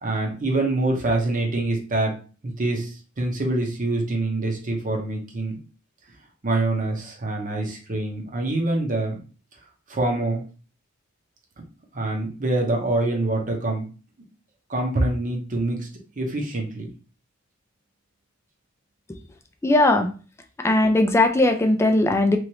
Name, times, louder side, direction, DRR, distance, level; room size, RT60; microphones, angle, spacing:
voice 1, 0.0-2.2 2.4-5.6 6.4-9.2 9.9-10.4 11.9-13.8 14.7-16.9, right 2 dB, 40° right, 1 dB, 0.8 m, -25 dB
voice 2, 19.6-20.1 20.6-22.4, left 2 dB, 15° left, 5 dB, 0.3 m, -18 dB
3.0 x 2.5 x 2.9 m, 0.36 s
head